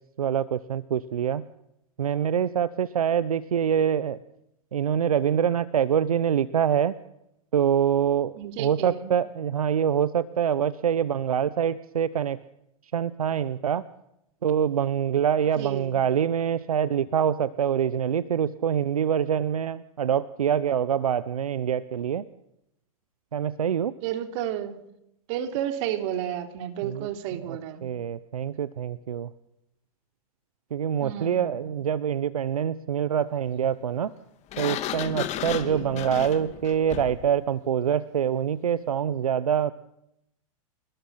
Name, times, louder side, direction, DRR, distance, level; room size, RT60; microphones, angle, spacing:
voice 1, 0.2-1.4 2.0-4.2 4.7-6.9 7.5-12.4 12.9-13.8 14.4-22.2 23.3-23.9 26.8-27.1 27.5-29.3 30.7-34.1 34.6-39.7, right 8 dB, 85° right, 17 dB, 0.9 m, -25 dB
voice 2, 8.4-9.1 15.6-16.0 24.0-24.8 25.3-27.9 31.0-31.7 35.5-36.0, right 10 dB, 55° right, 8 dB, 3.4 m, -32 dB
Sliding door, 34.5-37.3, left 12 dB, 40° left, 2.5 m, -33 dB
28.0 x 20.5 x 5.8 m, 0.81 s
hypercardioid pair, 110°, 18 cm